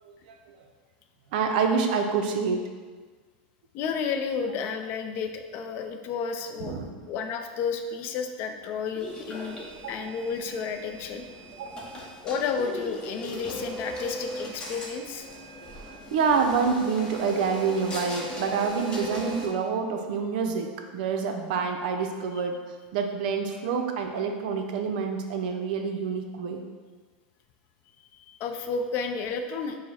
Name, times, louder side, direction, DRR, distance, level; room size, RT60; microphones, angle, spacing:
voice 1, 0.0-0.6 1.3-2.7 6.6-7.1 9.8-10.1 11.5-11.9 15.7-15.8 16.1-22.6 22.9-26.6, right 5 dB, 70° right, 4 dB, 0.5 m, -27 dB
voice 2, 3.7-6.7 7.1-9.6 9.9-11.2 12.2-15.3 28.1-29.8, left 5 dB, 45° left, 6 dB, 0.4 m, -31 dB
sound 1, 8.9-19.5, equal, 15° left, 0.8 m, -38 dB
4.6 x 2.1 x 4.2 m, 1.4 s
supercardioid pair, 125°, 5 cm